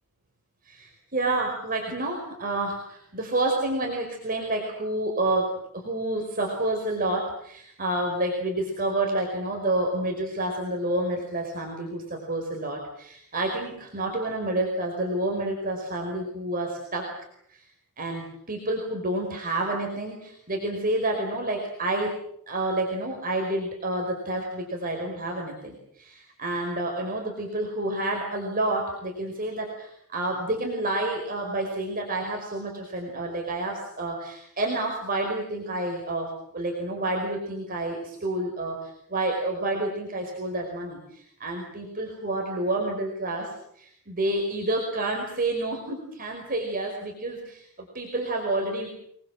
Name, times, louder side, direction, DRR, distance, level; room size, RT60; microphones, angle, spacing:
voice 1, 0.6-17.1 17.5-17.6 18.0-22.2 22.5-48.9, right 2 dB, 40° right, 0 dB, 5.1 m, -29 dB
27.5 x 21.0 x 7.7 m, 0.69 s
head